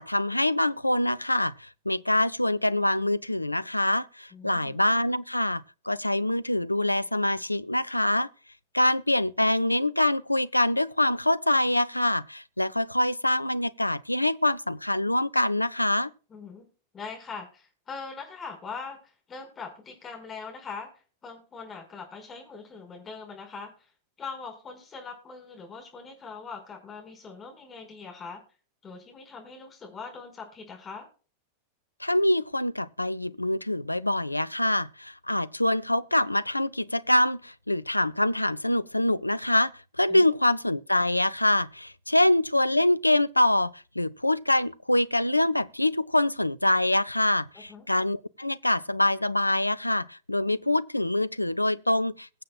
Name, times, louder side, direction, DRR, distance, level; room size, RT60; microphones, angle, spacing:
voice 1, 0.0-8.3 8.7-16.1 32.0-52.4, left 1 dB, 85° left, 0.4 m, -25 dB
voice 2, 4.3-4.7 16.3-16.6 16.9-20.9 21.2-23.9 24.2-28.4 28.8-31.1 40.1-40.3 42.1-42.3 47.7-47.8, left 4 dB, 20° left, 5.2 m, -41 dB
22.0 x 7.5 x 2.3 m
figure-of-eight pair, 90°, 0 cm